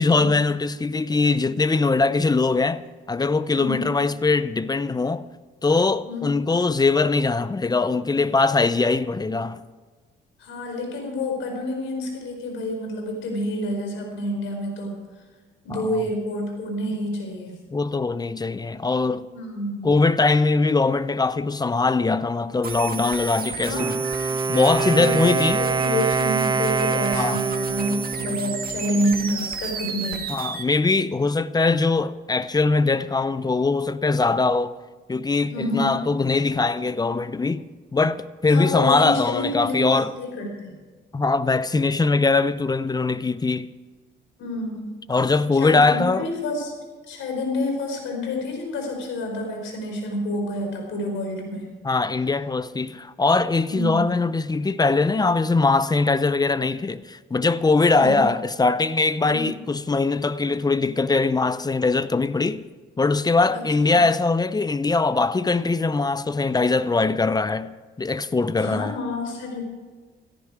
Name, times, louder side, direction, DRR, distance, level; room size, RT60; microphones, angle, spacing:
voice 1, 0.0-2.8 3.1-5.3 5.6-9.6 15.7-16.0 17.7-19.3 19.8-24.0 24.5-25.6 27.1-27.4 30.3-34.7 35.1-37.6 37.9-40.1 41.1-43.7 45.1-46.2 51.8-62.6 63.0-68.9, left 3 dB, 20° left, 0.7 m, -21 dB
voice 2, 3.5-3.9 6.0-6.3 10.4-15.0 15.6-17.6 19.3-19.9 23.6-23.9 24.9-30.3 35.5-36.0 38.5-40.7 44.4-44.8 45.5-46.7 47.1-51.7 53.7-54.0 57.9-58.3 59.2-59.5 63.5-64.0 68.6-69.6, left 1 dB, 80° left, 4.7 m, -28 dB
sound 1, 22.6-30.6, right 6 dB, 50° right, 1.9 m, -32 dB
Wind instrument woodwind instrument, 23.6-29.4, right 4 dB, 20° right, 0.6 m, -25 dB
16.0 x 14.0 x 4.8 m
cardioid pair, 90°, 20 cm